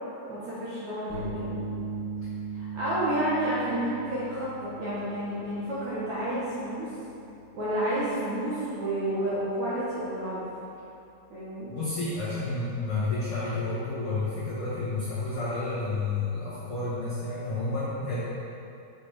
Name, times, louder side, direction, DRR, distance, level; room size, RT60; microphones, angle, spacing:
voice 1, 0.3-1.6 2.5-6.9 7.5-10.4 11.3-11.7, right 1 dB, 65° right, -9 dB, 1.9 m, -30 dB
sound 1, 1.1-17.0, right 3 dB, 70° left, 3.1 m, -42 dB
voice 2, 11.7-18.2, left 3 dB, 50° left, -12 dB, 1.8 m, -30 dB
7.5 x 7.3 x 3.4 m, 2.7 s
omnidirectional pair, 5.0 m